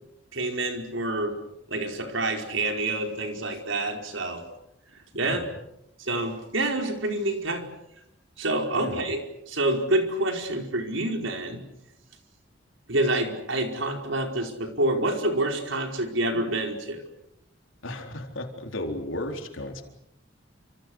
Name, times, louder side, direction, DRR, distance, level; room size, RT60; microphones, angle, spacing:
voice 1, 0.3-1.4 1.7-4.4 4.9-5.5 6.0-7.6 8.4-9.2 9.5-11.6 12.9-17.0, right 2 dB, 80° right, 3 dB, 4.9 m, -27 dB
voice 2, 17.8-19.8, left 1 dB, 85° left, 3 dB, 4.2 m, -34 dB
29.5 x 26.0 x 6.4 m, 0.82 s
head